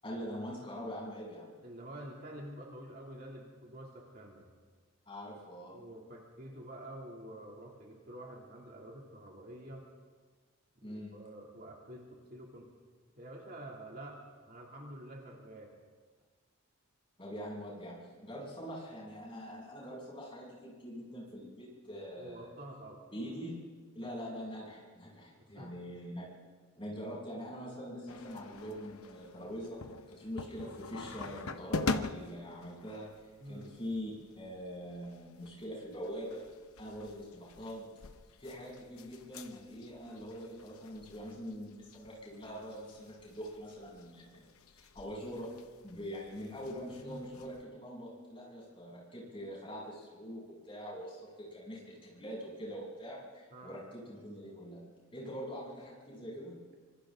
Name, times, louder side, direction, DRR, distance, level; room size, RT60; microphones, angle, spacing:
voice 1, 0.0-1.5 5.1-5.8 10.8-11.1 17.2-22.5 23.1-23.6 23.9-26.2 26.8-29.8 30.1-33.1 33.5-36.4 36.8-37.9 38.4-45.5 45.8-54.8 55.1-56.6, equal, 25° left, -4 dB, 7.5 m, -43 dB
voice 2, 1.6-4.5 5.7-9.9 10.8-12.7 13.2-14.2 14.5-15.7 22.2-23.0 25.6-25.7 33.4-33.7 47.0-47.2 53.5-53.8, right 1 dB, 45° right, -2 dB, 2.9 m, -48 dB
sound 1, 28.1-47.6, left 3 dB, 85° left, 0.9 m, -45 dB
26.0 x 25.5 x 3.9 m, 1.5 s
head